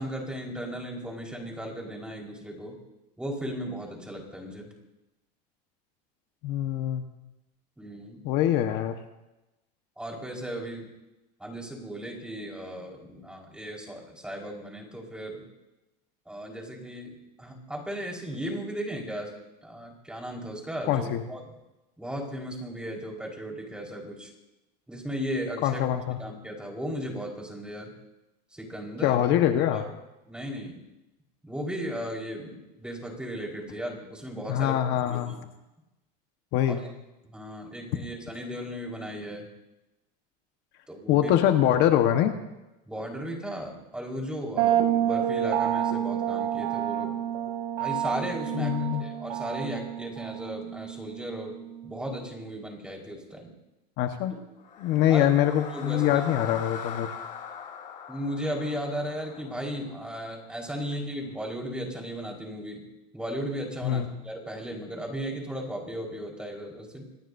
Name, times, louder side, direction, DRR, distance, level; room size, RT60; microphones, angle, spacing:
voice 1, 0.0-2.8 3.2-4.7 7.8-8.2 10.0-10.9 11.4-15.4 16.3-17.1 17.4-19.3 19.6-21.4 22.0-24.3 24.9-25.8 26.2-27.9 28.5-29.2 29.7-29.8 30.3-30.8 31.4-34.7 35.0-35.4 37.3-39.5 40.9-41.3 42.9-47.1 47.8-51.5 51.8-53.5 55.1-55.3 55.7-56.2 58.1-62.8 63.1-67.1, equal, 5° right, 0 dB, 4.6 m, -36 dB
voice 2, 6.4-7.0 8.2-9.0 20.8-21.2 25.6-26.2 29.0-29.8 34.5-35.4 36.5-36.8 41.1-42.3 48.5-49.1 54.0-54.3 54.8-57.1 63.8-64.1, left 11 dB, 55° left, 6 dB, 1.3 m, -24 dB
sound 1, 44.6-52.2, right 10 dB, 80° right, 2.8 m, -29 dB
sound 2, 54.6-60.7, left 7 dB, 40° left, 1.8 m, -41 dB
27.0 x 18.5 x 2.7 m, 0.98 s
supercardioid pair, 125°, 21 cm